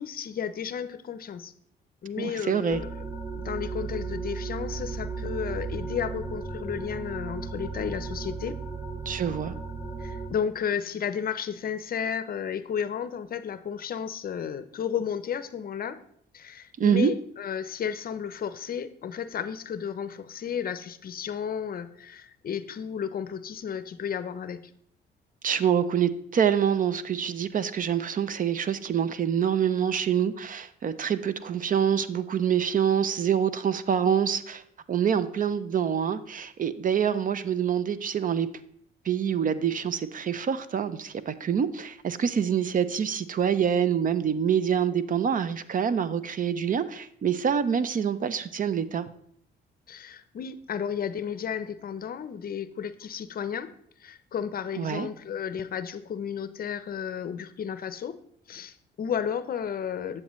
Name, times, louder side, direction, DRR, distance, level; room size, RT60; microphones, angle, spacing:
voice 1, 0.0-1.5 2.0-3.0 3.3-8.6 10.0-16.0 16.3-24.6 49.9-53.7 54.0-58.2 58.5-60.2, left 8 dB, 50° left, 13 dB, 0.6 m, -33 dB
voice 2, 2.2-2.8 9.1-9.5 16.8-17.1 25.4-34.6 34.9-38.5 39.1-49.1 54.8-55.1, right 8 dB, 45° right, 14 dB, 0.5 m, -26 dB
sound 1, 2.7-10.3, right 4 dB, 15° right, 1.7 m, -35 dB
8.6 x 7.6 x 3.1 m, 0.67 s
cardioid pair, 90°, 20 cm